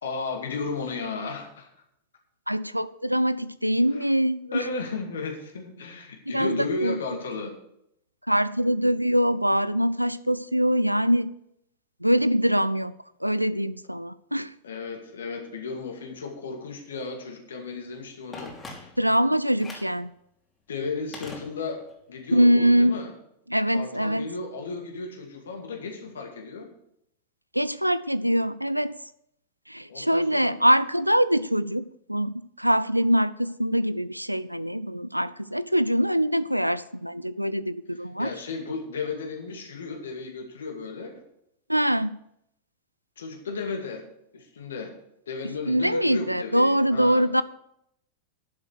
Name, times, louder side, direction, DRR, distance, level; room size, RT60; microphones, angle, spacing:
voice 1, 0.0-1.7 3.9-4.1 4.5-7.5 14.6-18.9 20.7-21.8 22.1-23.1 23.7-26.7 29.9-30.5 38.2-41.1 43.2-44.1 44.3-44.9 45.3-47.2, left 4 dB, 65° left, 4 dB, 2.2 m, -34 dB
voice 2, 2.5-4.7 6.3-6.9 8.3-11.3 12.0-12.9 13.2-14.5 19.0-20.1 22.3-22.9 23.5-24.2 27.5-28.9 29.7-38.3 41.7-42.2 45.4-47.4, equal, 90° right, 16 dB, 0.4 m, -23 dB
Telephone, 18.3-19.2 19.6-20.0 21.1-22.0 22.3-22.4, left 3 dB, 20° left, 3.1 m, -42 dB
11.0 x 7.4 x 6.4 m, 0.76 s
figure-of-eight pair, 90°, 0 cm